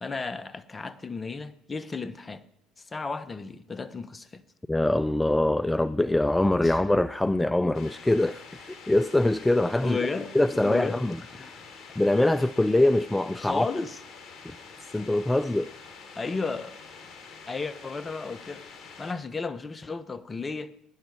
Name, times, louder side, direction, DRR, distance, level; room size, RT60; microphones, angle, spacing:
voice 1, 0.0-2.4 2.8-4.4 6.6-6.8 9.8-11.0 11.3-11.6 13.4-14.0 16.1-16.8 17.5-18.6 19.0-20.7, left 4 dB, 25° left, 0.9 m, -34 dB
voice 2, 4.7-10.0 10.3-11.2 12.0-13.7 14.9-15.7, left 1 dB, 10° left, 0.4 m, -23 dB
sound 1, 7.7-19.1, left 5 dB, 50° left, 3.5 m, -47 dB
17.5 x 10.5 x 4.8 m
hypercardioid pair, 70°, 0 cm